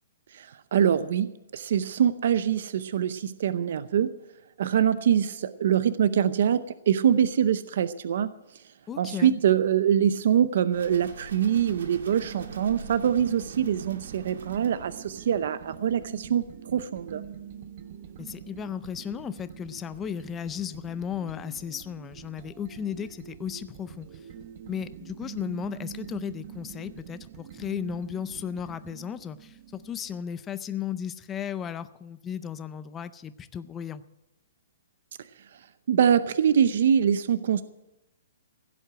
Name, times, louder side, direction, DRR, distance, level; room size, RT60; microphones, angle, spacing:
voice 1, 0.3-4.1 4.6-8.3 9.0-17.2 35.9-37.6, right 9 dB, 60° right, 14 dB, 0.6 m, -24 dB
voice 2, 8.9-9.3 18.1-24.1 24.6-34.0, left 8 dB, 15° left, 13 dB, 0.4 m, -35 dB
sound 1, 10.7-15.7, right 5 dB, 80° right, 2.1 m, -46 dB
sound 2, 11.4-30.2, right 9 dB, 40° right, 1.0 m, -45 dB
16.0 x 7.9 x 7.8 m, 0.92 s
hypercardioid pair, 165°, 0 cm